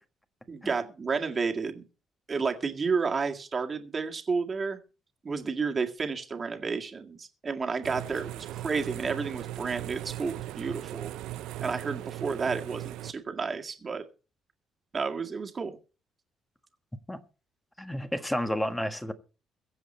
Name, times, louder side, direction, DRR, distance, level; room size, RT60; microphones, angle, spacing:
voice 1, 0.5-1.8 2.3-4.8 5.2-11.1 11.6-14.0 14.9-15.8, right 5 dB, 30° right, 2.0 m, -31 dB
sound 1, 7.8-13.1, right 15 dB, 90° right, 0.6 m, -38 dB
voice 2, 17.8-19.1, equal, 5° left, 1.5 m, -31 dB
22.5 x 7.8 x 4.3 m
cardioid pair, 130°, 0 cm